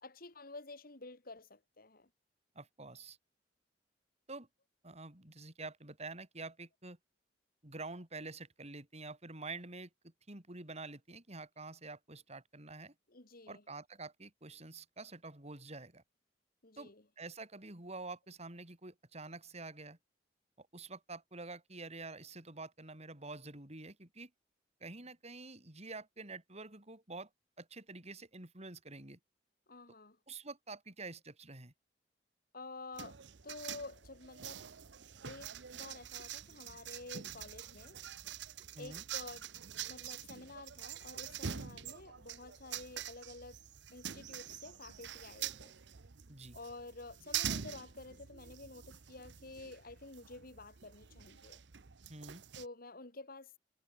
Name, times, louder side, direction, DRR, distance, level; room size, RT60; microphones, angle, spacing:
voice 1, 0.0-2.1 13.1-13.6 16.6-17.0 29.7-30.2 32.5-34.7 35.2-38.0 38.8-39.5 39.9-43.6 43.9-45.7 46.5-51.6 52.5-53.6, left 3 dB, 55° left, 2.7 m, -50 dB
voice 2, 2.5-3.2 4.3-4.5 4.8-7.0 7.6-12.9 13.5-16.0 16.8-20.0 20.6-24.3 24.8-27.3 27.6-29.2 30.3-31.7 38.8-39.0 46.3-46.6 52.1-52.4, right 3 dB, 35° right, 4.5 m, -48 dB
sound 1, 33.0-52.6, right 9 dB, 70° right, 0.9 m, -45 dB
head